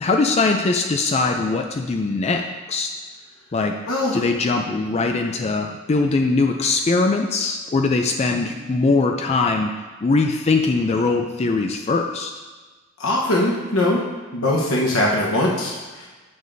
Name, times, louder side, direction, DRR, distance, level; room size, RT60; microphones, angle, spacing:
voice 1, 0.0-2.4 2.7-2.9 3.5-3.7 4.1-9.7 10.0-12.3, left 3 dB, 30° left, 4 dB, 0.4 m, -21 dB
voice 2, 3.9-4.2 8.3-8.4 13.0-14.0 14.3-16.1, left 1 dB, 75° left, -4 dB, 1.1 m, -21 dB
9.3 x 6.7 x 2.7 m, 1.3 s
head